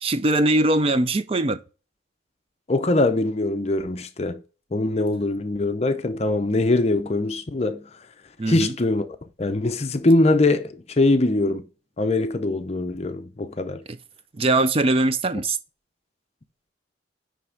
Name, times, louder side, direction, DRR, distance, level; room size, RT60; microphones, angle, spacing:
voice 1, 0.0-1.6 8.4-8.8 13.9-14.0 14.3-15.6, right 2 dB, 30° right, 0.4 m, -21 dB
voice 2, 2.7-4.4 4.7-7.8 8.5-9.0 9.4-11.6 12.0-13.8, left 2 dB, 35° left, 0.6 m, -22 dB
9.4 x 3.3 x 4.8 m
head